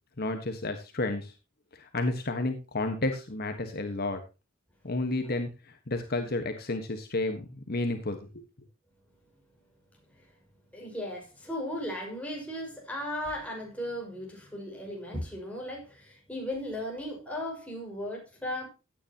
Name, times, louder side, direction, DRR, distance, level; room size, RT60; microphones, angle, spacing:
voice 1, 0.2-1.3 1.7-4.2 4.8-8.4, left 2 dB, 50° left, 6 dB, 1.4 m, -31 dB
voice 2, 10.7-18.7, left 1 dB, 5° left, -1 dB, 6.0 m, -36 dB
16.5 x 9.8 x 2.9 m, 0.30 s
head